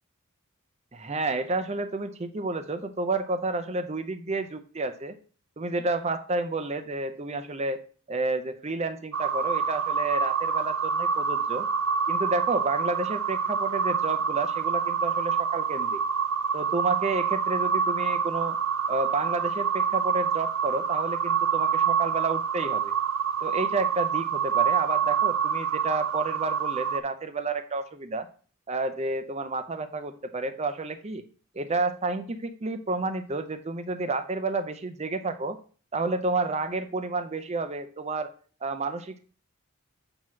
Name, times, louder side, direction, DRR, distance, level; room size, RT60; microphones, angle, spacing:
voice 1, 0.9-5.2 5.6-7.8 8.1-11.7 12.1-16.0 16.5-18.6 18.9-22.9 23.4-28.3 28.7-31.2 31.5-35.6 35.9-38.3 38.6-39.2, right 3 dB, 30° right, 9 dB, 0.6 m, -30 dB
sound 1, 9.1-27.0, right 7 dB, 75° right, 0.5 m, -27 dB
7.5 x 2.9 x 6.1 m, 0.41 s
head